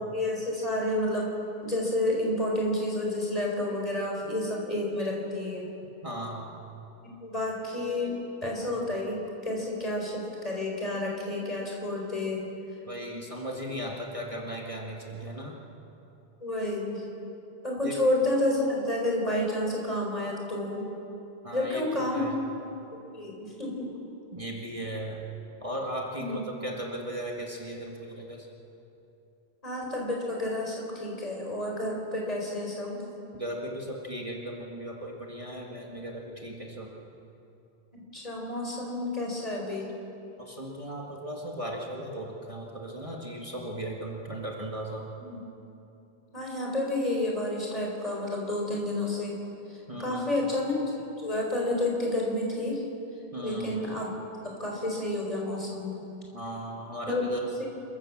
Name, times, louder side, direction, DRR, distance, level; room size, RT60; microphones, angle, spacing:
voice 1, 0.1-1.3 1.6-5.7 7.0-12.4 16.4-17.0 17.6-20.9 21.5-22.4 23.1-23.9 26.2-26.4 29.6-33.0 37.9-39.8 45.2-45.4 46.3-49.4 50.0-52.8 53.4-54.1 54.6-56.0 57.1-57.2, left 1 dB, 35° left, -2 dB, 4.6 m, -30 dB
voice 2, 6.0-6.5 12.9-15.6 17.8-18.0 21.4-22.4 24.3-25.2 25.6-28.5 33.3-36.9 40.4-45.1 49.9-50.4 53.3-53.8 56.3-57.5, right 1 dB, 30° right, -2 dB, 2.1 m, -37 dB
27.5 x 14.5 x 7.5 m, 2.9 s
omnidirectional pair, 1.1 m